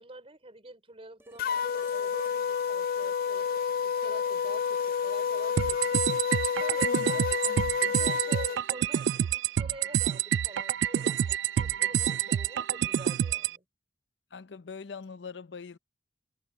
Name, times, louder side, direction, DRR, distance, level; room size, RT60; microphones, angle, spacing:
voice 1, 0.0-6.2 6.5-7.2 7.8-13.6, right 2 dB, 35° right, 4.4 m, -47 dB
sound 1, 1.2-9.3 11.4-11.5, right 2 dB, 15° right, 6.1 m, -56 dB
sound 2, 1.4-8.6, left 7 dB, 55° left, 0.3 m, -29 dB
sound 3, 5.6-13.6, right 9 dB, 75° right, 0.3 m, -28 dB
voice 2, 14.3-15.8, left 4 dB, 75° left, 0.7 m, -41 dB
head